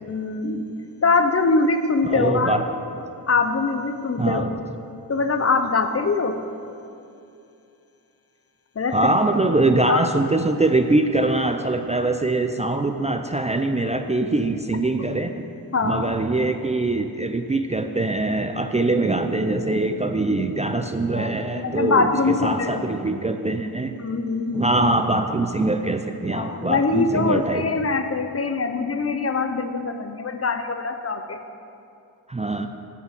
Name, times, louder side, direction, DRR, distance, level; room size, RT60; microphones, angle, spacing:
voice 1, 0.0-2.5 3.3-4.5 5.1-6.4 8.8-9.2 9.9-10.1 15.7-16.1 21.1-22.8 24.0-24.8 26.3-31.4, left 4 dB, 40° left, 8 dB, 0.7 m, -23 dB
voice 2, 2.0-2.7 4.2-4.5 8.9-15.4 15.8-23.9 24.5-27.7 32.3-32.7, right 2 dB, 20° right, 6 dB, 0.4 m, -23 dB
9.3 x 5.7 x 7.7 m, 2.6 s
cardioid pair, 75°, 38 cm